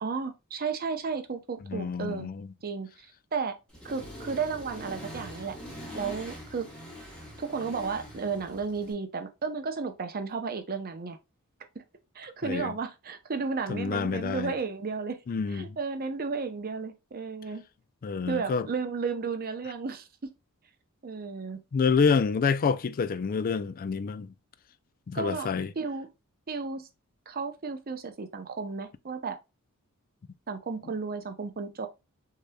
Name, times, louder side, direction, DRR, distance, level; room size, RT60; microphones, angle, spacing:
voice 1, 0.0-2.3 2.6-3.1 3.3-3.5 3.8-5.6 5.9-6.7 7.4-11.2 12.1-15.2 15.5-17.6 18.3-20.1 21.0-21.6 25.1-25.5 25.8-26.1 26.5-26.9 27.3-29.4 30.5-31.9, right 5 dB, 45° right, 0.7 m, -33 dB
voice 2, 1.7-2.5 12.4-12.7 13.7-14.5 15.3-15.7 18.0-18.7 21.7-24.3 25.1-25.7, left 5 dB, 40° left, 0.4 m, -27 dB
Accelerating revving vroom, 3.7-8.9, equal, 5° left, 1.7 m, -43 dB
6.5 x 2.9 x 2.3 m
head